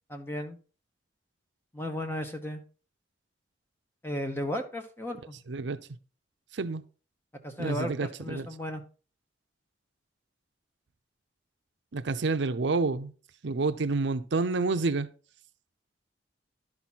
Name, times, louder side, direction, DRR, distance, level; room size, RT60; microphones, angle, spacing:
voice 1, 0.1-0.6 1.7-2.6 4.0-5.4 7.4-8.8, left 1 dB, 10° left, 1.1 m, -35 dB
voice 2, 5.5-5.8 6.5-6.8 7.6-8.5 11.9-13.1 13.4-15.1, right 3 dB, 65° right, 0.6 m, -28 dB
11.5 x 6.0 x 4.1 m
head